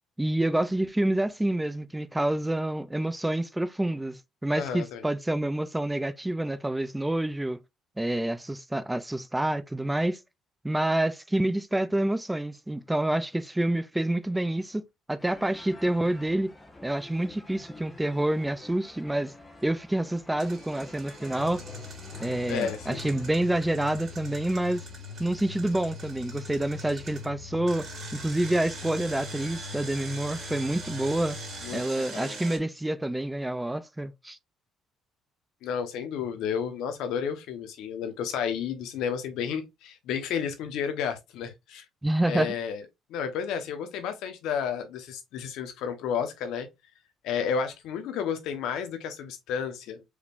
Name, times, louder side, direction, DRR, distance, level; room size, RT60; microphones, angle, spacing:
voice 1, 0.2-7.6 8.0-10.2 10.6-14.8 15.1-16.5 16.8-19.3 19.6-21.6 22.2-24.9 25.2-27.9 28.2-31.4 31.7-34.4 42.0-42.5, right 1 dB, 10° right, 0.4 m, -28 dB
voice 2, 4.5-5.0 22.5-23.0 31.6-32.4 35.6-41.8 42.3-42.8 43.1-46.7 47.2-50.0, left 7 dB, 80° left, 1.0 m, -32 dB
sound 1, 15.2-23.4, left 2 dB, 15° left, 1.2 m, -48 dB
Engine, 20.4-27.2 27.7-32.6, right 4 dB, 50° right, 2.3 m, -43 dB
sound 2, 21.3-31.8, left 7 dB, 60° left, 1.2 m, -43 dB
4.8 x 3.4 x 2.5 m
cardioid pair, 90°, 0 cm